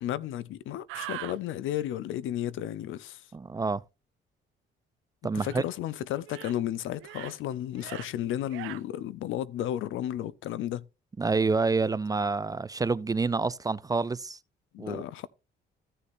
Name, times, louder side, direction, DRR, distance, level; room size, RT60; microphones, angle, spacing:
voice 1, 0.0-3.2 5.2-10.8 14.7-15.3, left 12 dB, 80° left, 0.6 m, -33 dB
sound 1, 0.9-1.4 5.4-5.7 6.2-6.6 7.0-7.4 7.7-8.1 8.5-8.8, right 17 dB, 90° right, 0.4 m, -41 dB
voice 2, 3.3-3.8 5.2-5.6 11.2-14.4 14.8-15.0, right 4 dB, 20° right, 0.3 m, -28 dB
14.5 x 6.7 x 2.5 m
cardioid pair, 90°, 20 cm